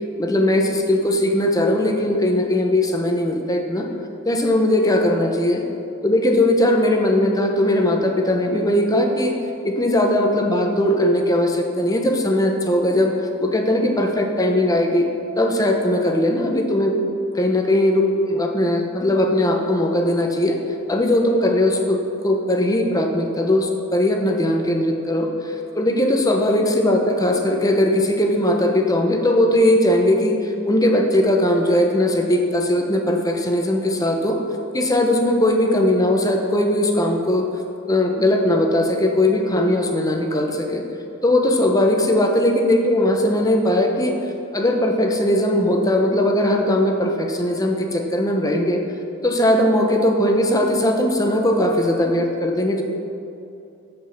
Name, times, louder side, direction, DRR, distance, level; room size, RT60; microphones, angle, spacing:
voice 1, 0.2-3.9 4.2-5.6 6.0-9.3 9.6-13.1 13.4-15.1 15.4-17.0 17.3-20.6 20.9-22.0 22.2-34.4 34.7-37.5 37.9-40.8 41.2-44.2 44.5-48.8 49.2-52.8, left 1 dB, 15° left, 2 dB, 1.0 m, -19 dB
14.0 x 5.6 x 5.9 m, 2.7 s
head